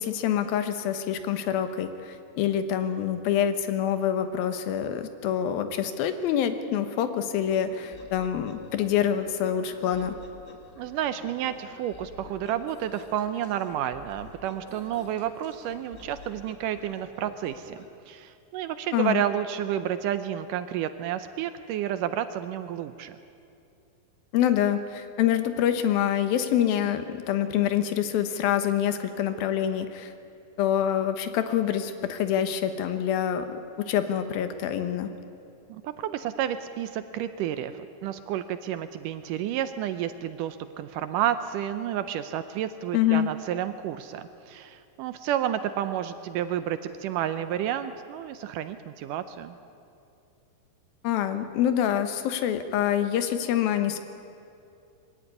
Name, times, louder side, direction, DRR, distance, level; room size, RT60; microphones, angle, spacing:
voice 1, 0.0-10.2 18.9-19.2 24.3-30.1 30.6-35.1 42.9-43.3 51.0-54.0, left 10 dB, 85° left, 9 dB, 2.9 m, -26 dB
sound 1, 7.4-17.9, left 3 dB, 35° left, 1.3 m, -49 dB
voice 2, 10.8-17.8 18.1-23.1 35.7-49.6, right 10 dB, 80° right, 11 dB, 2.1 m, -30 dB
22.0 x 16.0 x 9.7 m, 2.6 s
omnidirectional pair, 4.2 m